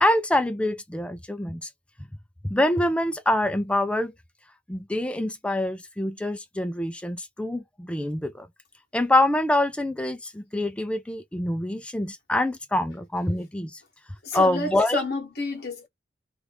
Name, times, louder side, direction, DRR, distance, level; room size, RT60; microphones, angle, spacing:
voice 1, 0.0-1.7 2.4-4.1 4.7-8.5 8.9-13.8 14.3-15.0, left 1 dB, 5° left, 0.3 m, -25 dB
voice 2, 14.2-15.9, left 2 dB, 55° left, 1.1 m, -30 dB
2.8 x 2.4 x 3.3 m
head